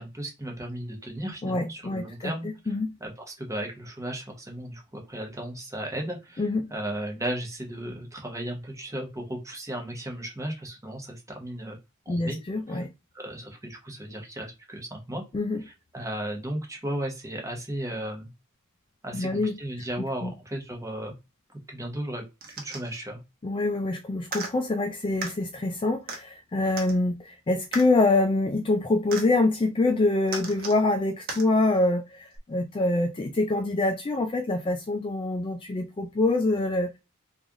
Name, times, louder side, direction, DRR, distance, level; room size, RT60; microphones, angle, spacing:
voice 1, 0.0-2.7 3.0-6.4 6.7-11.8 12.1-12.4 12.7-12.8 13.1-15.2 15.7-18.3 19.0-21.1 21.7-23.2, right 1 dB, 15° right, 1.0 m, -35 dB
voice 2, 1.4-2.9 6.4-6.7 12.1-12.9 15.3-15.6 19.1-19.6 20.2-20.3 23.4-37.0, left 2 dB, 25° left, 0.3 m, -25 dB
sound 1, 22.4-23.0 24.3-24.5 25.2-25.3 26.1-26.2 26.8-27.0 27.7-27.9 29.1-29.3 30.3-30.8 31.3-31.4 32.4-32.5, right 3 dB, 45° right, 0.9 m, -35 dB
3.2 x 2.5 x 3.5 m
head